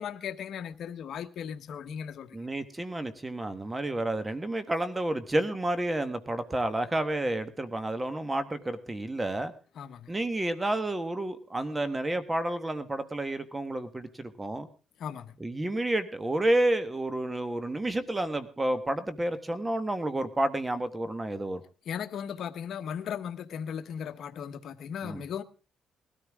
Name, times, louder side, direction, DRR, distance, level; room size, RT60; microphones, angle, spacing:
voice 1, 0.0-2.4 9.8-10.1 15.0-15.4 21.9-25.4, left 8 dB, 65° left, 1.1 m, -37 dB
voice 2, 2.3-9.5 10.1-14.7 15.4-21.6 25.0-25.2, right 1 dB, 20° right, 1.4 m, -30 dB
20.0 x 13.5 x 3.6 m
cardioid pair, 90°, 0 cm